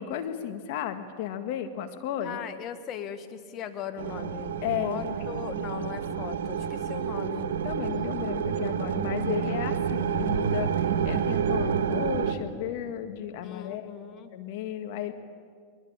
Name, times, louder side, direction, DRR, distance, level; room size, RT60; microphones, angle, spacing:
voice 1, 0.0-2.4 4.6-5.1 7.6-13.9 14.3-15.1, left 10 dB, 60° left, 8 dB, 1.6 m, -33 dB
voice 2, 2.2-4.5 4.8-7.5 13.4-14.3, left 9 dB, 40° left, 9 dB, 1.7 m, -39 dB
sound 1, 4.0-12.3, right 7 dB, 75° right, 1.6 m, -29 dB
23.5 x 20.5 x 8.8 m, 2.1 s
hypercardioid pair, 110°, 0 cm